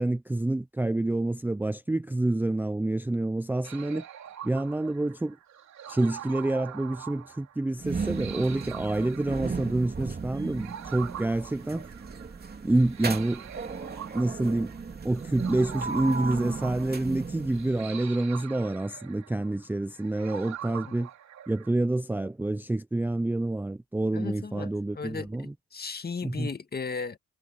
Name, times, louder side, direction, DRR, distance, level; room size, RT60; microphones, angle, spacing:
voice 1, 0.0-4.0 4.4-5.4 5.9-11.9 12.6-13.4 14.1-14.7 15.0-21.1 21.5-25.5 26.2-26.5, right 2 dB, 5° right, 0.5 m, -28 dB
sound 1, 3.6-21.7, right 10 dB, 65° right, 3.2 m, -44 dB
sound 2, 7.8-18.0, right 5 dB, 30° right, 3.1 m, -36 dB
voice 2, 24.1-27.2, left 5 dB, 30° left, 2.0 m, -36 dB
cardioid pair, 90°, 30 cm